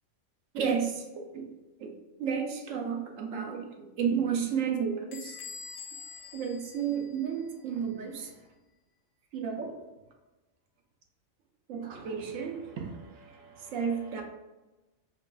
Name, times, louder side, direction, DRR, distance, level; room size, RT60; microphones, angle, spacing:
voice 1, 0.5-1.5 1.8-1.9 2.2-3.6 4.0-5.4 6.3-8.3 9.3-9.7 11.7-14.2, right 7 dB, 75° right, 3 dB, 0.9 m, -32 dB
Bell / Squeak, 5.1-7.6, left 5 dB, 75° left, 1.0 m, -45 dB
4.6 x 2.4 x 2.2 m, 1.1 s
omnidirectional pair, 1.4 m